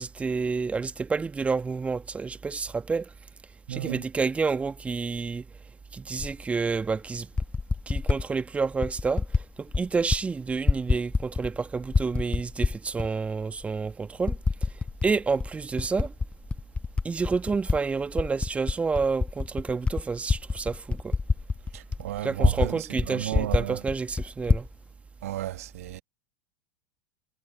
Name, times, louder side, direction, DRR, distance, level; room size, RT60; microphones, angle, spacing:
voice 1, 0.0-3.1 3.7-5.5 5.9-7.3 7.9-14.4 15.0-16.1 17.0-21.2 22.2-24.7, right 4 dB, 15° right, 1.8 m, -29 dB
voice 2, 3.7-4.1 21.7-23.8 25.2-26.0, right 14 dB, 60° right, 1.7 m, -33 dB
Typing, 6.2-6.3 7.2-8.2 8.8-9.4 9.7-10.2 10.5-11.6 11.9-13.1 13.6-13.7 14.3-15.1 15.4-17.8 18.1-22.7 23.0-23.1 23.3-24.7, left 4 dB, 15° left, 1.1 m, -26 dB
figure-of-eight pair, 85°, 9 cm